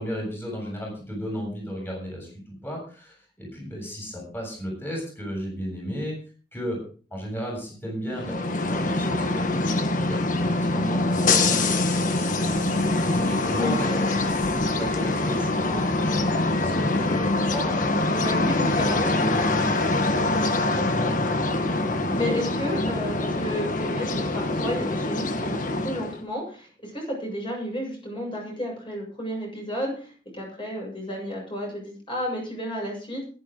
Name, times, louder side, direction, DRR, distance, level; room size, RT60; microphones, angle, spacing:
voice 1, 0.0-6.2 6.5-6.8 7.1-9.8 10.0-18.1 19.5-20.0 21.9-22.3, equal, 15° left, -1 dB, 7.5 m, -34 dB
sound 1, 8.1-26.2, left 2 dB, 45° left, 1.5 m, -24 dB
voice 2, 18.2-19.7 22.1-33.2, equal, 30° left, -1 dB, 7.5 m, -32 dB
22.0 x 11.5 x 3.9 m, 0.41 s
head